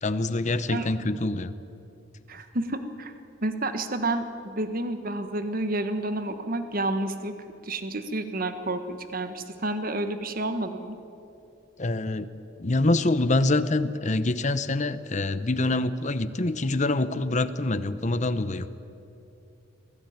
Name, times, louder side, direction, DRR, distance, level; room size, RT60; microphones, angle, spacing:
voice 1, 0.0-1.5 11.8-12.3 12.6-18.7, left 2 dB, 40° left, 13 dB, 0.9 m, -25 dB
voice 2, 2.3-3.1 3.4-7.3 7.6-11.0, right 2 dB, 45° right, 9 dB, 1.4 m, -30 dB
24.0 x 16.5 x 9.5 m, 2.7 s
head